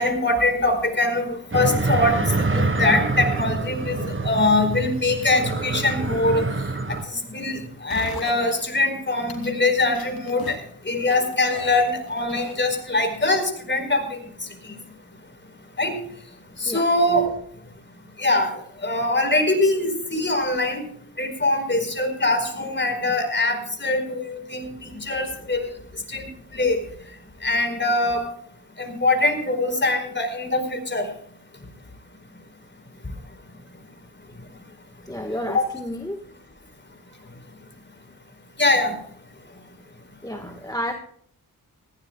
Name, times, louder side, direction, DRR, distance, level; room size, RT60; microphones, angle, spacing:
voice 1, 0.0-6.5 6.9-10.6 10.8-14.0 15.8-16.0 16.6-17.3 18.2-18.5 18.8-20.8 21.2-25.7 26.1-26.8 27.4-28.2 28.8-31.1 35.5-35.7 38.6-38.9, left 2 dB, 30° left, 5 dB, 4.7 m, -23 dB
sound 1, 1.5-7.0, right 3 dB, 35° right, 1.3 m, -26 dB
sound 2, 7.9-8.6 9.2-9.5 9.9-10.6 11.1-12.8 13.1-13.2, left 4 dB, 80° left, 2.9 m, -36 dB
voice 2, 35.1-36.2 40.2-40.9, equal, 10° left, 5 dB, 1.5 m, -31 dB
19.5 x 16.0 x 2.3 m, 0.64 s
cardioid pair, 60°, 36 cm